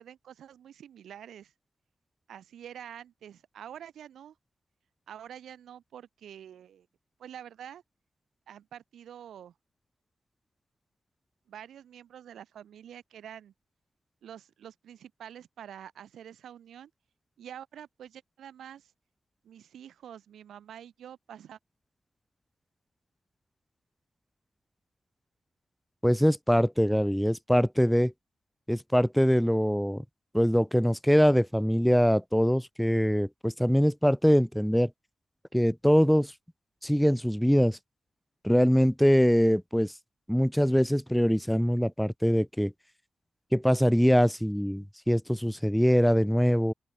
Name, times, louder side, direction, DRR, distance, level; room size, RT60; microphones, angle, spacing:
voice 1, 0.0-1.5 2.3-4.4 5.1-6.9 7.2-7.8 8.5-9.5 11.5-13.5 14.2-16.9 17.4-18.9 19.4-21.6, right 9 dB, 90° right, 2.0 m, -47 dB
voice 2, 26.0-28.1 28.7-30.0 30.3-34.9 35.5-36.3 36.8-37.8 38.4-39.9 40.3-42.7 43.5-46.7, equal, ahead, 0.4 m, -23 dB
open air
cardioid pair, 50°, 0 cm